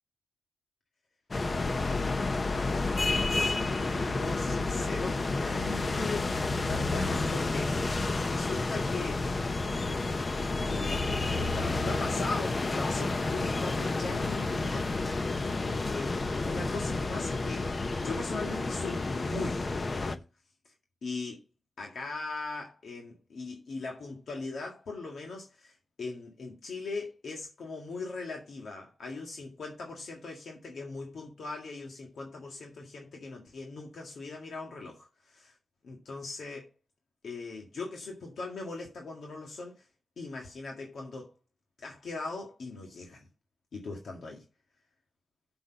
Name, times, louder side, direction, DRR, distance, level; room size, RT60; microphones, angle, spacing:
sound 1, 1.3-20.2, left 3 dB, 45° left, 1.0 m, -30 dB
voice 1, 1.6-2.3 2.5-9.3 10.6-14.9 15.7-17.7 17.9-20.2 21.0-21.4 21.8-35.5 35.8-36.7 37.2-39.8 40.2-41.3 41.8-43.2 43.7-44.4, left 3 dB, 85° left, 1.9 m, -40 dB
6.9 x 6.0 x 6.9 m
cardioid pair, 65°, 0 cm